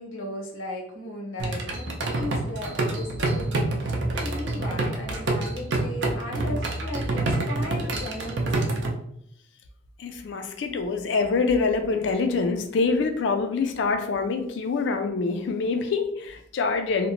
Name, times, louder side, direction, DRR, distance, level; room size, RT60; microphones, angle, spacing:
voice 1, 0.0-8.8, left 1 dB, 80° left, 0 dB, 0.8 m, -36 dB
sound 1, 1.4-8.9, right 2 dB, 60° right, 0.5 m, -27 dB
voice 2, 10.0-17.1, left 4 dB, 65° left, 6 dB, 0.4 m, -25 dB
2.8 x 2.1 x 2.8 m, 0.70 s
head